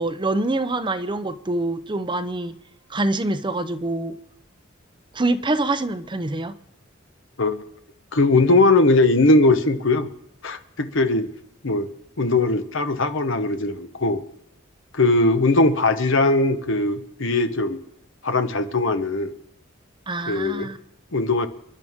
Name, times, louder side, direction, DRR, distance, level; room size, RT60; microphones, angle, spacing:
voice 1, 0.0-2.5 2.9-4.2 5.1-6.6 20.1-20.8, right 2 dB, 25° right, 0.7 m, -25 dB
voice 2, 8.1-10.1 10.4-11.3 11.6-11.9 12.2-14.2 14.9-17.8 18.2-19.3 20.3-20.7 21.1-21.5, left 2 dB, 65° left, 1.2 m, -20 dB
28.5 x 11.0 x 3.7 m
head